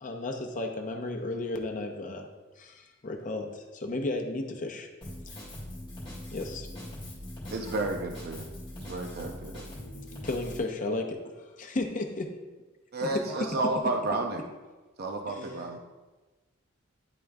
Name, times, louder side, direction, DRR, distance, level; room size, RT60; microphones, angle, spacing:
voice 1, 0.0-2.3 2.6-4.9 5.3-5.4 6.3-6.7 10.2-11.2 11.6-12.3 15.3-15.4, left 2 dB, 40° left, 3 dB, 0.8 m, -33 dB
Drum kit, 5.0-10.6, left 1 dB, 25° left, 2.1 m, -41 dB
voice 2, 7.5-8.5 8.8-9.6 12.9-14.4 15.0-15.8, right 2 dB, 50° right, 2 dB, 0.5 m, -31 dB
voice 3, 13.0-13.7 15.4-15.8, right 3 dB, 85° right, -1 dB, 0.7 m, -43 dB
10.0 x 3.8 x 3.5 m, 1.2 s
head